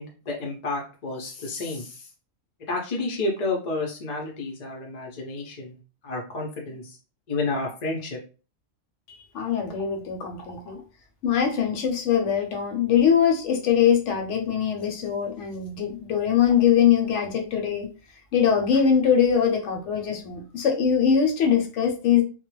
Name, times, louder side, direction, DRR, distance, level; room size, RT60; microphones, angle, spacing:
voice 1, 0.0-2.0 2.7-5.8 6.0-7.0 7.3-8.2, left 3 dB, 50° left, -1 dB, 0.5 m, -30 dB
voice 2, 9.3-10.8 11.2-17.9 18.3-22.2, left 8 dB, 75° left, 3 dB, 0.9 m, -22 dB
2.3 x 2.0 x 3.0 m, 0.35 s
omnidirectional pair, 1.3 m